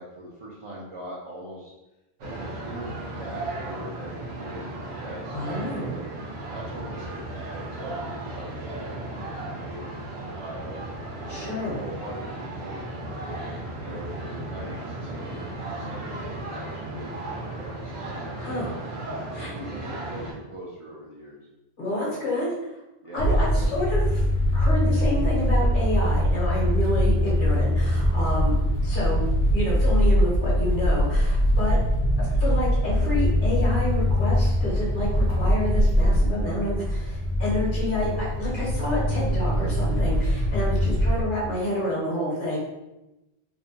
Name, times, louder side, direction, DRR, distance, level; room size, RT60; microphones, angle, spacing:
voice 1, 0.0-1.7 2.2-6.0 6.5-9.9 10.2-10.8 11.4-13.0 13.8-17.7 18.0-18.7 19.1-21.4 23.0-23.7 41.7-41.8, right 1 dB, 50° right, -6 dB, 0.4 m, -41 dB
sound 1, 2.2-20.3, right 2 dB, 80° right, 0.9 m, -35 dB
voice 2, 5.3-6.0 11.3-11.8 18.3-18.7 19.3-19.5 21.8-22.5 23.1-24.2 24.5-31.8 32.2-42.6, left 1 dB, 55° left, -5 dB, 0.9 m, -29 dB
sound 2, 23.2-41.2, equal, 85° left, 0.8 m, -22 dB
2.5 x 2.1 x 2.7 m, 0.96 s
omnidirectional pair, 1.1 m